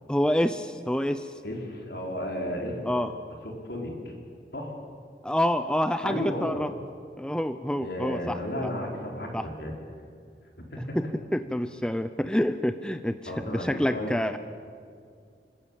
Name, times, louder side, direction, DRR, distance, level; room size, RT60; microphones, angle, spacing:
voice 1, 0.1-1.3 2.9-3.1 5.2-6.7 7.2-8.4 9.3-9.5 11.0-14.4, equal, 5° left, 10 dB, 0.5 m, -27 dB
voice 2, 1.4-3.3 3.6-4.1 4.5-4.8 6.0-6.6 7.8-9.8 10.7-11.0 13.3-14.1, left 1 dB, 70° left, 0 dB, 4.7 m, -33 dB
30.0 x 13.5 x 9.0 m, 2.3 s
head